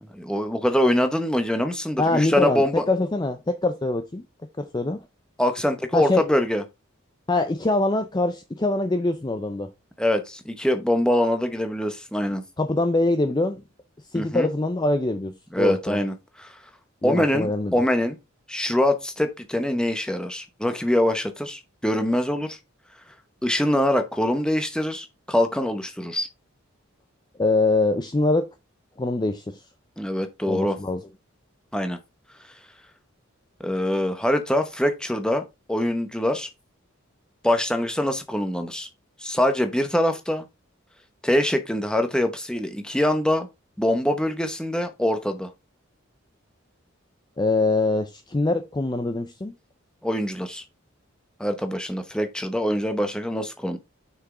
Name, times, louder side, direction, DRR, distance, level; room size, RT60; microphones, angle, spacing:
voice 1, 0.0-2.8 5.4-6.6 10.0-12.4 14.1-14.5 15.5-16.6 17.0-18.2 18.5-22.6 23.4-26.3 30.0-30.8 31.7-32.0 33.6-35.4 35.7-36.5 37.4-38.9 39.2-40.5 41.2-43.5 43.8-45.5 50.0-50.6 51.4-53.8, left 1 dB, 5° left, 0.9 m, -24 dB
voice 2, 2.0-4.2 4.6-5.0 5.9-6.2 7.3-9.7 12.6-13.6 14.1-16.0 17.0-17.7 27.4-28.5 29.0-29.6 30.5-31.0 47.4-49.5, left 2 dB, 20° left, 0.4 m, -24 dB
6.3 x 6.0 x 3.7 m
head